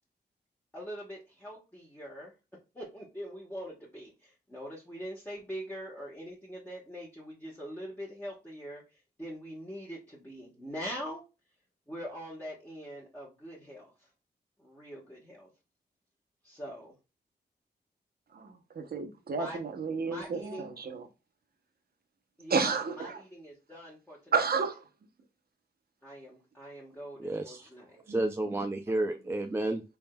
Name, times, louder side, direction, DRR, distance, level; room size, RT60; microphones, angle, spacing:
voice 1, 0.7-2.3 2.7-11.2 11.9-14.1 14.6-15.5 16.4-16.9 19.3-19.6 20.0-20.6 22.4-24.3 26.0-27.9, equal, 10° left, 1.1 m, -43 dB
voice 2, 18.3-21.1 22.5-23.2 24.3-24.8 28.1-28.3, right 5 dB, 60° right, 0.8 m, -31 dB
voice 3, 27.2-27.6 28.1-29.8, right 2 dB, 15° right, 0.3 m, -31 dB
3.9 x 3.5 x 2.2 m
wide cardioid pair, 115°, 18 cm